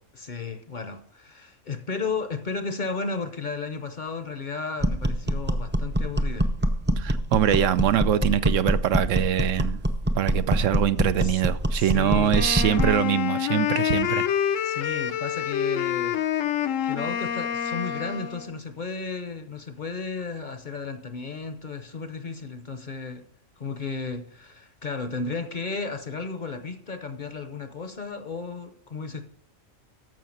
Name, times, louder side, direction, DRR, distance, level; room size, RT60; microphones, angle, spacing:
voice 1, 0.1-6.5 11.2-11.4 11.7-12.4 14.6-16.2 16.8-23.3 23.6-29.3, left 4 dB, 45° left, 0.8 m, -34 dB
sound 1, 4.8-13.0, equal, 15° right, 0.5 m, -25 dB
voice 2, 7.0-9.8 10.2-14.2, right 10 dB, 75° right, 0.9 m, -23 dB
Wind instrument woodwind instrument, 12.3-18.5, left 9 dB, 75° left, 1.0 m, -27 dB
14.0 x 5.7 x 5.9 m
omnidirectional pair, 1.3 m